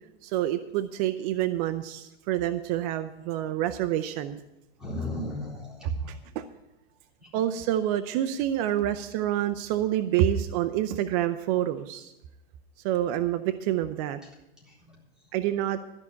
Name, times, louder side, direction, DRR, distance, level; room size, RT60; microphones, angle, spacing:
voice 1, 0.2-4.4 5.8-6.5 7.3-12.1 12.8-14.2 15.3-15.8, right 12 dB, 35° right, 11 dB, 0.5 m, -27 dB
voice 2, 4.8-6.2 7.2-7.4 14.6-15.3, left 2 dB, ahead, -4 dB, 3.7 m, -37 dB
13.5 x 5.7 x 8.5 m, 0.93 s
supercardioid pair, 145°, 33 cm